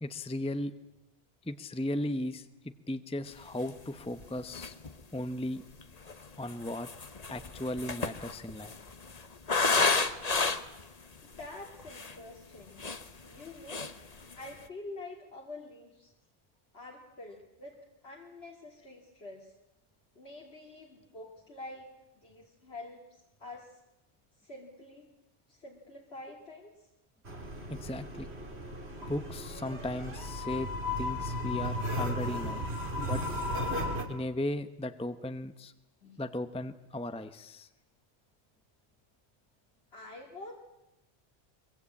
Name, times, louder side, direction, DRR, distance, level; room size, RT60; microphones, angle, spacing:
voice 1, 0.0-0.7 1.5-4.7 5.1-5.6 6.4-6.9 7.3-8.7 27.7-28.3 29.1-30.7 31.0-32.6 33.0-33.2 34.1-35.7 36.2-37.7, left 1 dB, 5° left, 10 dB, 0.8 m, -36 dB
sound 1, 3.7-3.8 4.2-4.3 4.5-5.0 5.8-10.8 11.4-11.5 11.8-12.2 12.6-13.4 13.7-14.0 14.3-14.6, left 4 dB, 35° left, 1.2 m, -31 dB
voice 2, 11.2-12.9 13.2-13.9 14.4-16.1 16.7-17.8 18.0-19.5 20.1-21.9 22.2-23.8 24.4-25.1 25.5-26.9 36.0-36.2 39.9-40.5, left 2 dB, 70° left, -1 dB, 2.8 m, -47 dB
sound 2, 27.2-34.0, left 1 dB, 70° right, 3.2 m, -35 dB
23.5 x 23.0 x 8.5 m, 0.94 s
omnidirectional pair, 1.1 m